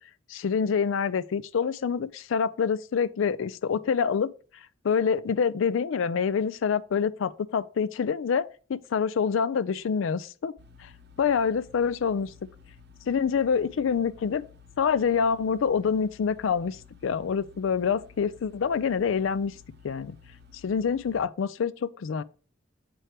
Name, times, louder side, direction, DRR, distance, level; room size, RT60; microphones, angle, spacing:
voice 1, 0.3-10.5 10.8-10.9 11.2-12.3 13.1-14.4 14.8-19.6 19.8-20.2 20.6-22.2, left 6 dB, 85° left, 0.4 m, -26 dB
sound 1, 10.6-21.2, left 5 dB, 60° right, 0.7 m, -53 dB
7.7 x 4.4 x 3.3 m
head